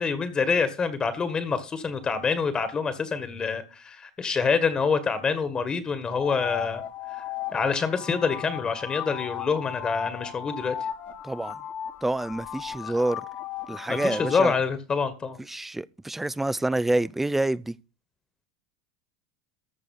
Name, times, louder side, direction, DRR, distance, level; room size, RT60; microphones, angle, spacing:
voice 1, 0.0-6.8 7.5-10.7 12.8-12.9 13.9-15.4, left 5 dB, 25° left, 1.7 m, -26 dB
sound 1, 6.1-14.5, left 10 dB, 45° left, 1.6 m, -36 dB
voice 2, 11.2-11.6 12.0-13.2 13.7-14.5 15.5-17.8, right 2 dB, 5° right, 0.5 m, -27 dB
14.0 x 4.9 x 7.2 m
supercardioid pair, 105°, 3 cm